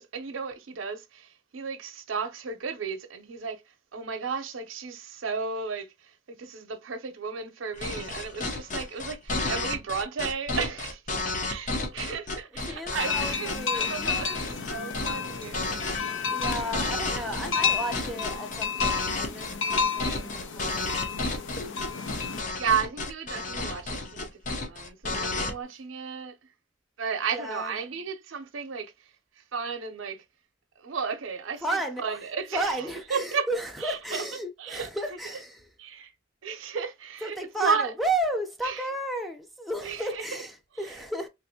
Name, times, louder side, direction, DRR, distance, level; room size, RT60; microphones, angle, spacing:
voice 1, 0.0-3.6 3.9-11.0 11.5-16.0 22.6-26.4 27.0-28.9 29.4-30.2 30.8-33.5 33.8-34.2 34.6-35.2 35.8-36.1 36.4-37.9 38.6-38.8 39.8-40.4, right 5 dB, 85° right, 0.6 m, -33 dB
sound 1, 7.8-25.5, left 2 dB, 40° left, 0.7 m, -32 dB
voice 2, 12.5-14.6 15.9-21.0 27.3-27.8 31.6-35.7 37.2-41.3, right 1 dB, ahead, 0.5 m, -33 dB
sound 2, 13.0-22.4, left 6 dB, 70° left, 0.6 m, -31 dB
3.3 x 2.5 x 2.8 m
head